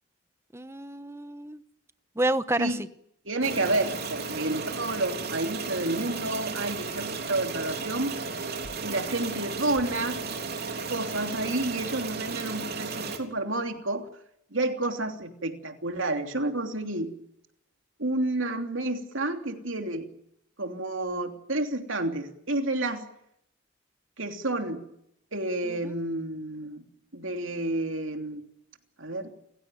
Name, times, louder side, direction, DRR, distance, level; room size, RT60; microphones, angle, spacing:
voice 1, 0.5-1.6 2.2-2.8 25.6-26.0, right 1 dB, 15° right, 12 dB, 1.0 m, -29 dB
voice 2, 3.2-8.2 8.8-10.2 10.9-14.1 14.5-17.1 18.0-20.1 20.6-23.1 24.2-24.8 25.3-26.8 27.1-28.4 29.0-29.3, right 2 dB, 70° right, 5 dB, 3.1 m, -30 dB
sound 1, 3.4-13.2, right 4 dB, 50° right, 3.8 m, -34 dB
29.0 x 16.5 x 9.2 m, 0.76 s
head